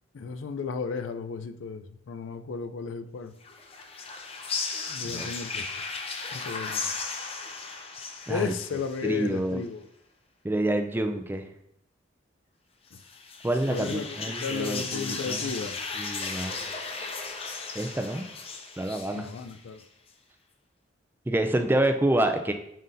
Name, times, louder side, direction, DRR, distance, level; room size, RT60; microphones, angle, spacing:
voice 1, 0.1-3.3 4.9-5.6 6.3-6.9 8.3-9.9 12.9-13.0 13.7-14.2 14.4-15.8 19.1-19.8, left 5 dB, 85° left, 9 dB, 0.4 m, -34 dB
sound 1, 3.4-9.4 12.9-19.8, left 4 dB, 30° left, 0.7 m, -36 dB
voice 2, 9.0-9.6 10.4-11.5 13.4-15.7 16.0-16.6 17.8-18.3 18.8-19.3 21.3-22.5, right 1 dB, 10° right, 6 dB, 0.4 m, -27 dB
9.1 x 4.0 x 2.6 m, 0.78 s
head